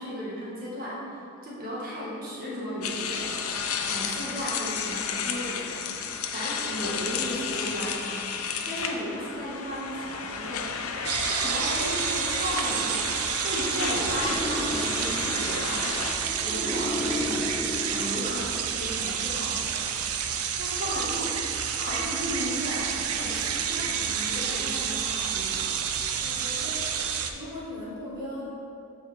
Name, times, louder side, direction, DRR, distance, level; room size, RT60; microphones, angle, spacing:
voice 1, 0.0-3.3 3.6-8.2 8.6-10.9 11.2-15.8 16.4-17.5 17.8-20.0 20.6-21.3 21.7-25.8, equal, 40° right, -6 dB, 1.7 m, -35 dB
sound 1, 2.8-16.1, left 6 dB, 75° left, 0.6 m, -32 dB
sound 2, 11.0-27.3, right 7 dB, 90° right, 0.6 m, -29 dB
sound 3, 14.2-18.8, left 1 dB, ahead, 0.3 m, -34 dB
voice 2, 26.2-28.4, left 1 dB, 20° right, -9 dB, 1.7 m, -39 dB
14.0 x 4.7 x 3.5 m, 2.7 s
head